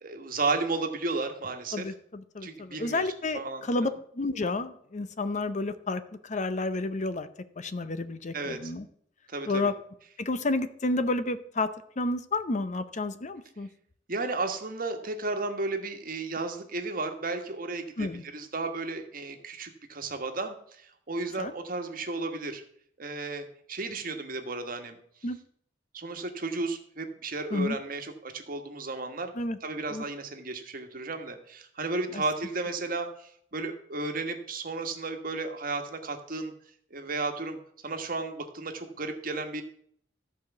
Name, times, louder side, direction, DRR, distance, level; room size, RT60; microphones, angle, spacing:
voice 1, 0.0-1.9 2.4-3.1 3.3-3.9 8.3-8.7 9.3-9.7 14.1-22.6 23.0-25.0 25.9-29.3 29.6-36.5 36.9-37.6 37.8-39.6, right 3 dB, 50° right, 6 dB, 1.4 m, -33 dB
voice 2, 1.7-3.9 4.1-7.3 7.6-8.8 9.5-9.7 10.3-11.7 12.0-13.7 18.0-18.2 21.4-21.5 25.2-25.4 27.5-27.8 29.4-29.6 29.9-30.0 32.1-32.2, left 2 dB, 40° left, 12 dB, 0.6 m, -30 dB
14.0 x 4.8 x 6.9 m, 0.65 s
head